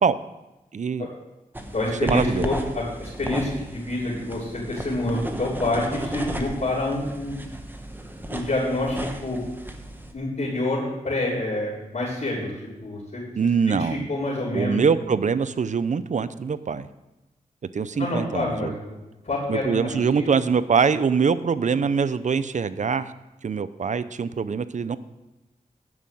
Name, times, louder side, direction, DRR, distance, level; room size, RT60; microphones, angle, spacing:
voice 1, 0.7-1.1 2.0-2.5 13.4-14.1 14.5-16.9 17.7-18.8 19.5-23.1 23.4-25.0, right 6 dB, 55° right, 14 dB, 0.6 m, -23 dB
sound 1, 1.5-10.1, right 1 dB, 15° right, 1.2 m, -35 dB
voice 2, 1.7-7.4 8.3-9.4 10.1-12.5 12.8-13.2 13.7-14.8 18.0-18.8 19.2-20.3, left 2 dB, 60° left, -10 dB, 3.7 m, -27 dB
11.0 x 5.4 x 7.6 m, 1.0 s
cardioid pair, 55°, 15 cm